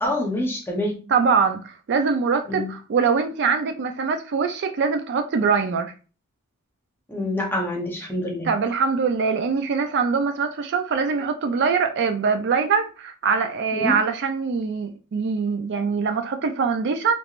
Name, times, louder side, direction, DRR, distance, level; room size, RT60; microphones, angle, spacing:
voice 1, 0.0-1.0 2.5-2.7 7.1-8.5 13.7-14.0, left 1 dB, 10° left, 0.8 m, -26 dB
voice 2, 1.1-5.9 8.4-17.2, right 5 dB, 50° right, 0.4 m, -23 dB
3.4 x 3.1 x 2.4 m
head